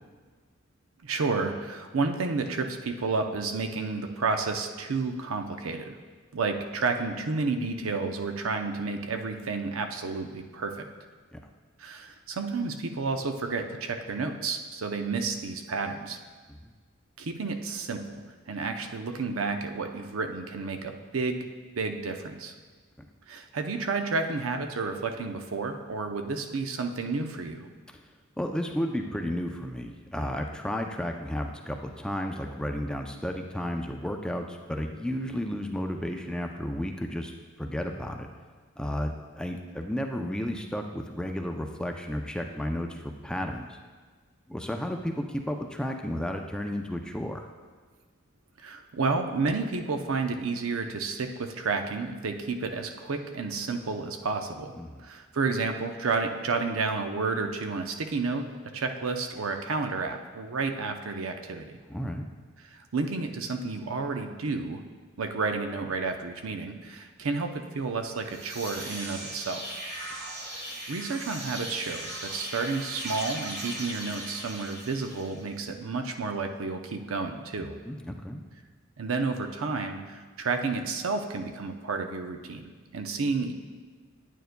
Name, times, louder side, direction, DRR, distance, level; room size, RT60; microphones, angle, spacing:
voice 1, 1.0-6.0 6.3-10.8 11.8-16.2 17.2-21.5 21.8-22.5 23.3-27.7 48.6-54.7 55.0-61.8 62.7-64.8 65.2-69.8 70.5-77.8 79.0-83.5, right 4 dB, 80° right, 5 dB, 0.6 m, -31 dB
voice 2, 28.4-37.3 37.6-38.3 38.8-43.8 44.5-47.5 54.8-55.1 61.9-62.2 77.6-78.4, equal, 5° left, 3 dB, 0.4 m, -33 dB
sound 1, 68.1-75.5, right 1 dB, 55° right, 1.5 m, -38 dB
9.2 x 9.0 x 2.2 m, 1.5 s
head